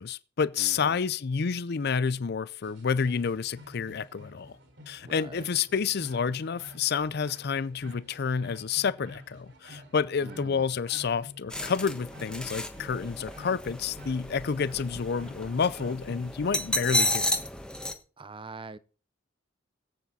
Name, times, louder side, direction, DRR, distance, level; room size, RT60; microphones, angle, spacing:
voice 1, 0.0-4.5 4.9-17.4, left 6 dB, 55° left, 0.5 m, -29 dB
voice 2, 0.6-1.0 5.0-5.5 10.2-10.6 18.2-18.8, right 3 dB, 30° right, 0.7 m, -44 dB
sound 1, 2.6-17.2, left 1 dB, 70° right, 4.1 m, -51 dB
sound 2, 11.5-17.9, left 1 dB, 5° left, 1.3 m, -32 dB
21.0 x 8.3 x 4.1 m
head